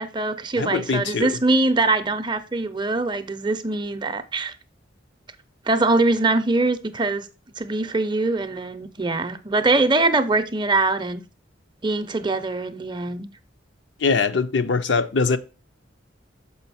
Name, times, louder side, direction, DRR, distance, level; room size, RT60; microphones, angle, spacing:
voice 1, 0.0-4.5 5.7-7.3 7.6-11.2 11.8-13.3, right 2 dB, 25° right, 0.6 m, -23 dB
voice 2, 0.6-1.4 14.0-15.4, left 4 dB, 65° left, 0.6 m, -22 dB
7.0 x 4.9 x 4.1 m
head